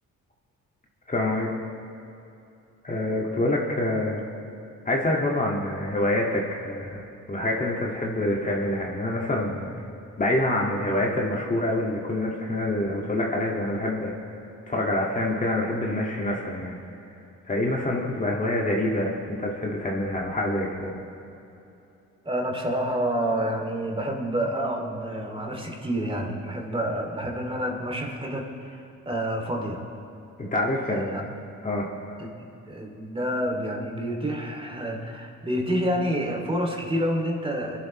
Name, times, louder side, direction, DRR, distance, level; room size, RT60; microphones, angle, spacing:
voice 1, 1.1-1.5 2.8-4.2 4.9-9.8 10.2-14.3 14.7-16.8 17.5-20.9 30.4-31.2 31.6-32.1, left 1 dB, 25° left, -2 dB, 1.9 m, -26 dB
voice 2, 22.2-29.8 30.9-31.2 32.2-32.3 32.7-37.8, equal, 20° right, 0 dB, 2.6 m, -28 dB
25.0 x 11.0 x 3.1 m, 2.8 s
cardioid pair, 90°, 30 cm